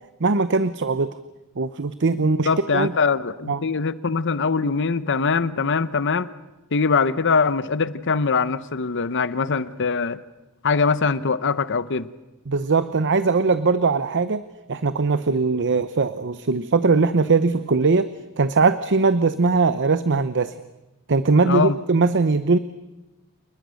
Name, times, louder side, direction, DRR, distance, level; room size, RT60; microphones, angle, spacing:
voice 1, 0.2-1.1 1.6-2.9 3.5-3.6 12.5-14.4 14.7-18.1 18.4-20.5 21.1-22.6, right 4 dB, 55° right, 13 dB, 0.8 m, -20 dB
voice 2, 2.5-6.3 6.7-10.2 10.6-12.1 21.4-21.8, left 4 dB, 55° left, 15 dB, 0.9 m, -22 dB
29.5 x 20.5 x 6.5 m, 1.0 s
head